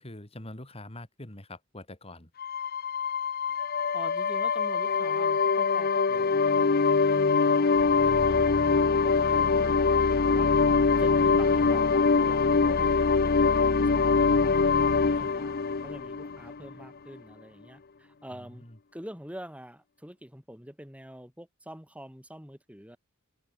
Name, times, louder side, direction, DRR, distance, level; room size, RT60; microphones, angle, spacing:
voice 1, 0.0-2.3 15.1-15.4 18.3-18.8, left 1 dB, 30° left, 2.9 m, -45 dB
sound 1, 2.4-16.8, left 4 dB, 45° left, 0.7 m, -23 dB
voice 2, 3.9-10.5 10.9-18.7 18.9-23.0, equal, 5° right, 7.1 m, -46 dB
head